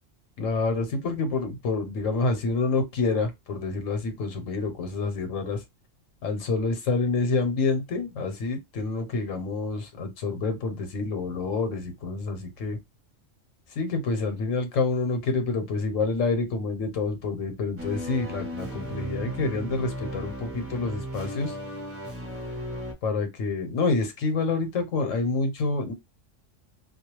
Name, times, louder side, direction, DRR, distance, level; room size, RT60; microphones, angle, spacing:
voice 1, 0.4-5.6 6.2-12.8 13.7-21.5 23.0-25.9, left 3 dB, 80° left, 1.1 m, -27 dB
sound 1, 17.8-22.9, equal, 15° right, 0.6 m, -35 dB
2.3 x 2.2 x 2.9 m
omnidirectional pair, 1.3 m